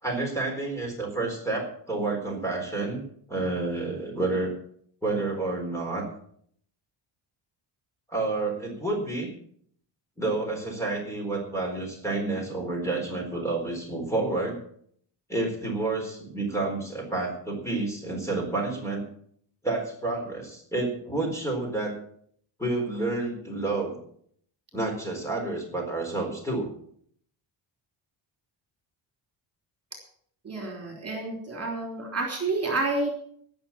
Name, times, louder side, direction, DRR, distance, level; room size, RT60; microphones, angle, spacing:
voice 1, 0.0-4.5 5.0-6.1 8.1-9.3 10.2-14.6 15.3-19.1 19.6-21.9 22.6-24.0 24.7-26.7, right 2 dB, 5° left, 1 dB, 4.2 m, -29 dB
voice 2, 30.4-33.1, right 3 dB, 30° right, 0 dB, 3.5 m, -29 dB
17.5 x 6.7 x 7.1 m, 0.63 s
wide cardioid pair, 155°, 49 cm